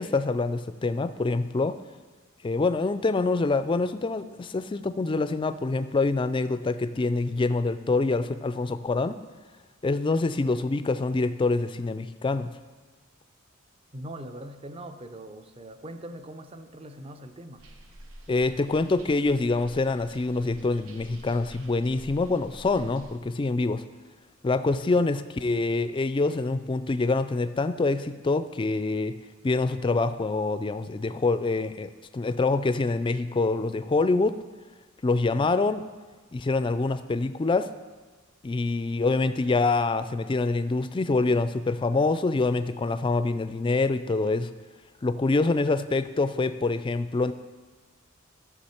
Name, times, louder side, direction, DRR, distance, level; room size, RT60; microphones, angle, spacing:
voice 1, 0.0-1.8 2.4-9.2 9.8-12.5 18.3-23.8 24.4-29.1 29.4-34.4 35.0-35.8 36.3-37.7 38.4-44.5 45.0-47.3, left 3 dB, 25° left, 12 dB, 0.3 m, -25 dB
voice 2, 13.9-17.7, right 1 dB, 30° right, 8 dB, 0.6 m, -41 dB
sound 1, 17.6-23.2, right 1 dB, 75° right, 1.0 m, -49 dB
12.5 x 6.9 x 4.4 m, 1.4 s
head